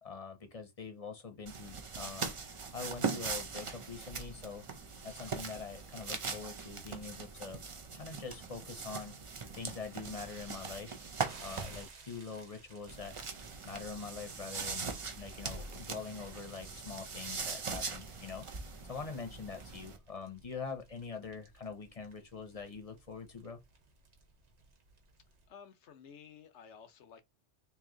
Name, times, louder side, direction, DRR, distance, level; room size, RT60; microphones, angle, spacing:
voice 1, 0.0-2.3 2.7-4.7 5.0-7.6 7.9-9.1 9.5-11.1 11.4-13.2 13.7-18.5 18.8-23.6, left 5 dB, 35° left, 0.7 m, -44 dB
sound 1, 1.5-11.9 12.9-20.0, right 5 dB, 40° right, 0.5 m, -41 dB
sound 2, 11.3-25.5, right 4 dB, 90° right, 1.4 m, -58 dB
voice 2, 25.5-27.2, left 7 dB, 90° left, 1.1 m, -54 dB
3.1 x 2.9 x 3.7 m
omnidirectional pair, 1.1 m